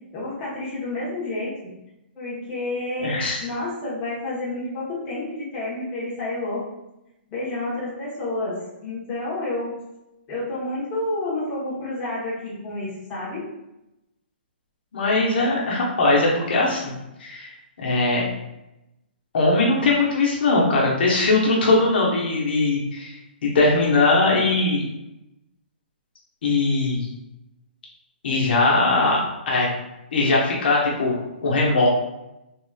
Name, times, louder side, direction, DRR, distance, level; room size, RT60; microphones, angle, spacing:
voice 1, 0.1-1.5 2.1-6.6 7.3-9.7 10.3-13.5, left 2 dB, 20° left, -7 dB, 1.0 m, -29 dB
voice 2, 3.0-3.4 14.9-16.9 17.2-17.5 17.8-18.2 19.3-23.1 23.4-24.8 26.4-27.1 28.2-29.7 30.1-31.9, left 2 dB, 65° left, -4 dB, 0.9 m, -20 dB
3.6 x 2.9 x 2.3 m, 0.91 s
hypercardioid pair, 150°, 6 cm